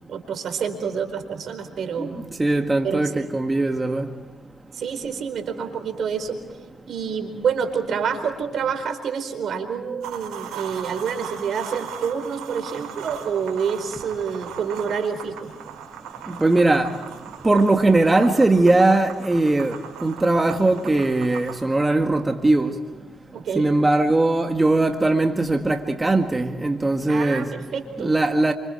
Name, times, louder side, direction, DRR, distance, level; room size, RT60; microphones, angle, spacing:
voice 1, 0.1-2.2 2.8-3.4 4.7-6.4 6.9-15.5 23.3-23.7 27.1-28.2, right 6 dB, 65° right, 4.5 m, -28 dB
voice 2, 2.4-4.1 16.3-16.9 17.4-19.8 20.0-22.7 23.5-27.5 28.0-28.5, right 2 dB, 20° right, 1.8 m, -20 dB
sound 1, 10.0-21.6, right 8 dB, 80° right, 4.5 m, -38 dB
29.5 x 26.0 x 4.6 m
supercardioid pair, 60°, 0 cm